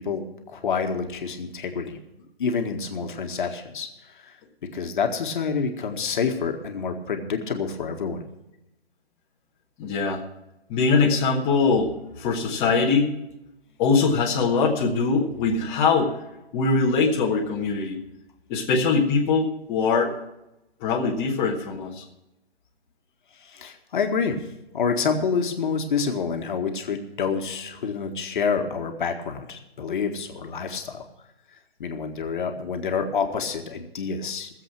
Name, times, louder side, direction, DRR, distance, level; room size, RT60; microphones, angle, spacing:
voice 1, 0.0-2.0 2.4-4.3 4.7-8.2 23.4-24.5 24.7-31.0 31.8-34.5, left 5 dB, 50° left, 4 dB, 1.9 m, -28 dB
voice 2, 9.8-10.2 10.7-13.1 13.8-16.2 16.5-18.0 18.5-20.2 20.8-22.0, left 4 dB, 15° left, -3 dB, 1.6 m, -22 dB
18.5 x 7.7 x 6.1 m, 0.90 s
hypercardioid pair, 155°, 32 cm